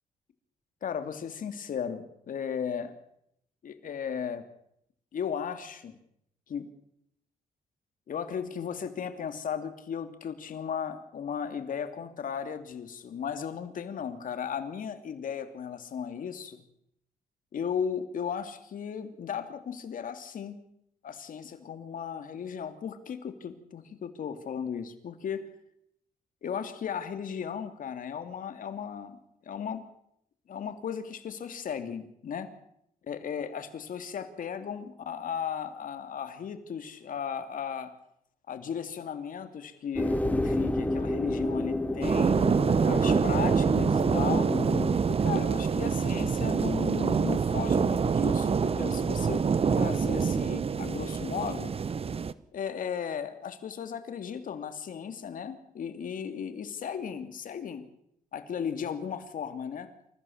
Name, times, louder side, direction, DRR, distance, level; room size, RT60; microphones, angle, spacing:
voice 1, 0.8-2.9 3.6-4.4 5.1-6.0 6.5-6.7 8.1-16.6 17.5-20.6 21.0-25.5 26.4-29.2 29.5-29.8 30.5-32.5 33.1-37.9 38.5-42.4 42.8-44.5 45.1-49.5 49.8-51.7 52.5-57.8 58.3-59.9, left 7 dB, 65° left, 9 dB, 2.7 m, -36 dB
sound 1, 40.0-45.0, left 1 dB, 10° left, 2.4 m, -30 dB
sound 2, 42.0-52.3, right 6 dB, 40° right, 1.0 m, -26 dB
27.5 x 15.0 x 7.2 m, 0.76 s
cardioid pair, 85°, 15 cm